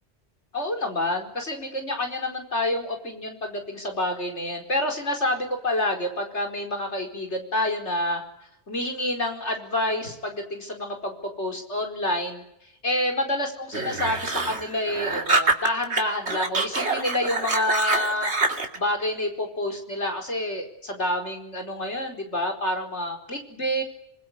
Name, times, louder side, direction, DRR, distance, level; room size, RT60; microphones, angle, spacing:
voice 1, 0.5-8.2 8.7-12.4 12.8-18.3 18.7-23.8, left 1 dB, 85° left, 3 dB, 4.9 m, -28 dB
sound 1, 13.7-16.0 16.3-18.8, right 3 dB, 75° right, 2.9 m, -25 dB
26.5 x 21.0 x 9.9 m, 0.78 s
omnidirectional pair, 1.1 m